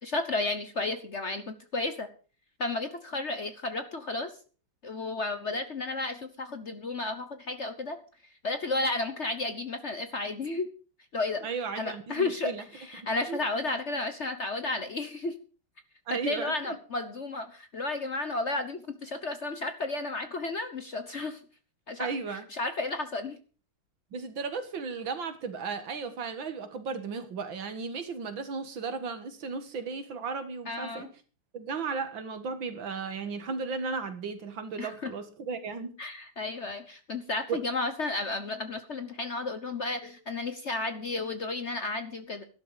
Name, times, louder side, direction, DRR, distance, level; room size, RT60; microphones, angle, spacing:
voice 1, 0.0-2.1 2.6-4.3 4.8-8.0 8.4-10.7 11.1-11.5 11.8-15.3 16.1-21.4 21.9-22.1 22.5-23.4 30.7-31.1 34.8-35.1 36.0-42.4, left 2 dB, 40° left, 9 dB, 1.2 m, -32 dB
voice 2, 11.4-12.6 13.0-13.4 16.1-16.8 22.0-22.4 24.1-31.1 31.5-35.9 37.5-37.6, right 5 dB, 70° right, 9 dB, 2.4 m, -35 dB
13.0 x 12.0 x 5.0 m, 0.37 s
omnidirectional pair, 2.2 m